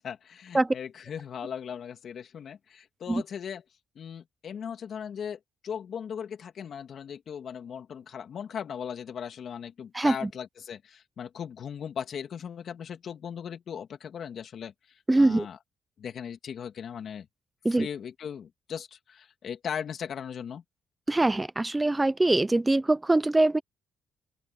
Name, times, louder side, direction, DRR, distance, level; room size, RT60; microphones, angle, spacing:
voice 1, 0.0-3.6 3.9-15.6 16.0-17.3 17.7-20.6, left 8 dB, 60° left, 3.0 m, -38 dB
voice 2, 9.9-10.3 15.1-15.5 17.6-17.9 21.1-23.6, right 2 dB, 15° right, 0.8 m, -23 dB
open air
cardioid pair, 90°, 0 cm